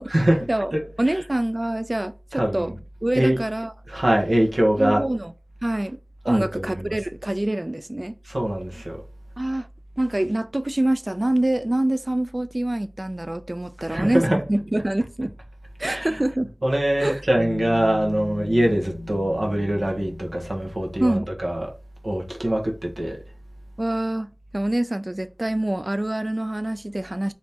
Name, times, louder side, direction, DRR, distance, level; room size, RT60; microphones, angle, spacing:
voice 1, 0.0-1.2 2.3-2.8 3.1-3.4 3.9-5.0 6.2-7.0 8.2-9.0 13.9-14.5 15.8-16.2 16.6-21.7 22.0-23.2, right 1 dB, 70° right, 1.2 m, -23 dB
voice 2, 1.0-2.7 3.0-3.7 4.8-5.3 5.6-6.0 6.2-8.2 9.4-9.7 10.0-15.4 15.8-16.5 17.0-17.2 21.0-21.3 23.8-24.3 24.5-27.3, right 1 dB, 40° right, 0.3 m, -25 dB
sound 1, 17.4-21.2, left 2 dB, 70° left, 0.5 m, -37 dB
4.1 x 3.0 x 3.5 m
wide cardioid pair, 45°, 0 cm